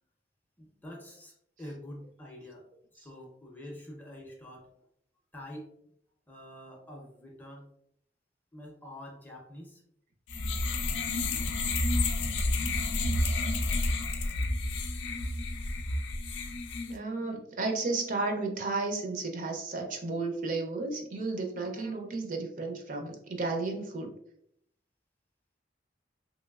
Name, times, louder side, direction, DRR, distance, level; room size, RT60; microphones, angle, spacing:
voice 1, 0.6-1.3 1.6-2.7 3.0-4.7 5.3-5.7 6.3-7.6 8.5-9.8 11.3-12.0 12.8-13.2, left 1 dB, 10° left, -1 dB, 0.5 m, -47 dB
sound 1, 10.3-16.9, left 2 dB, 75° left, 0.4 m, -30 dB
voice 2, 16.9-24.1, right 3 dB, 45° right, 3 dB, 0.4 m, -33 dB
3.0 x 2.9 x 2.3 m, 0.73 s
head